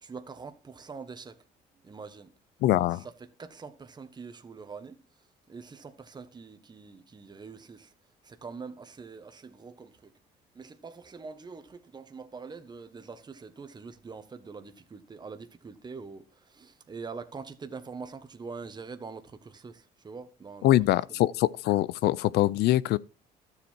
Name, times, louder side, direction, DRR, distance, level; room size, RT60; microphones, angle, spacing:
voice 1, 0.0-1.4 1.8-2.3 2.7-7.9 8.2-10.1 10.5-21.2, right 4 dB, 25° right, 1.3 m, -44 dB
voice 2, 2.6-3.0 20.6-23.0, left 15 dB, 75° left, 0.5 m, -23 dB
13.0 x 7.4 x 4.5 m
cardioid pair, 110°, 17 cm